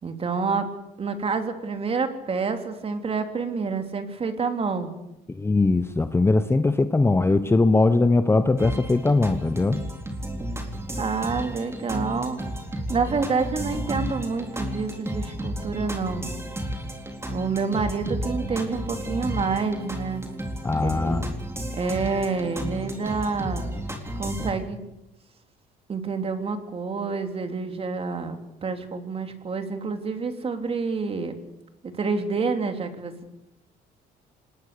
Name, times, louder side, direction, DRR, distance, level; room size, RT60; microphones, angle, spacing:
voice 1, 0.0-0.7 1.0-4.9 11.0-12.4 12.9-16.3 17.3-20.2 20.8-21.3 21.7-23.7 24.2-24.8 25.9-31.3 31.8-33.3, right 4 dB, 35° right, 7 dB, 3.2 m, -28 dB
voice 2, 5.3-9.8 20.6-21.3, left 3 dB, 15° left, 11 dB, 1.0 m, -21 dB
sound 1, 8.6-24.5, right 1 dB, 15° right, 4.2 m, -32 dB
26.0 x 20.5 x 6.9 m, 0.88 s
cardioid pair, 110°, 17 cm